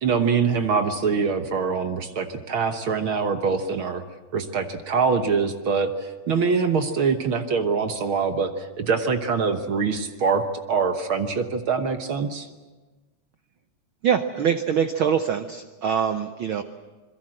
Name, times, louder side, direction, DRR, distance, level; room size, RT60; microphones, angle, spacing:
voice 1, 0.0-4.0 4.3-12.5, right 5 dB, 55° right, 7 dB, 1.5 m, -24 dB
voice 2, 14.0-16.6, right 8 dB, 80° right, 8 dB, 1.1 m, -24 dB
26.5 x 22.0 x 7.7 m, 1.3 s
omnidirectional pair, 3.5 m